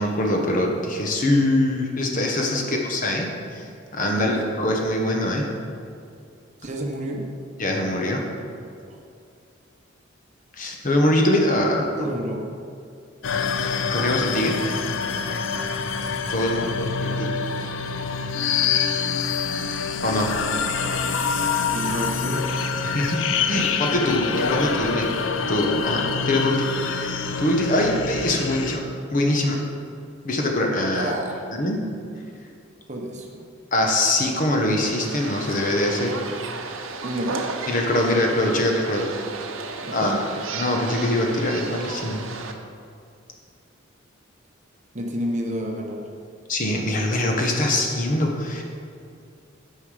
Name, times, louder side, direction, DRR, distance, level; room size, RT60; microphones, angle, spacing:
voice 1, 0.0-5.5 7.6-8.2 10.6-12.1 13.6-14.6 16.3-16.7 17.0-17.3 20.0-20.3 22.8-25.1 25.5-27.1 27.4-29.6 30.2-31.1 31.5-31.9 33.7-36.2 37.7-39.0 39.9-40.2 40.5-42.2 46.5-48.6, left 1 dB, 40° left, 1 dB, 1.0 m, -23 dB
voice 2, 4.2-4.5 6.6-7.3 8.9-9.0 11.9-12.6 16.4-16.9 21.7-22.5 23.5-24.5 30.9-31.4 32.9-33.5 37.0-37.5 39.8-40.3 44.9-46.1, right 1 dB, 35° right, 1 dB, 0.9 m, -31 dB
sound 1, 13.2-28.8, left 5 dB, 70° left, 0.5 m, -26 dB
sound 2, 34.8-42.5, right 4 dB, 85° right, 0.7 m, -33 dB
9.1 x 5.6 x 4.9 m, 2.4 s
head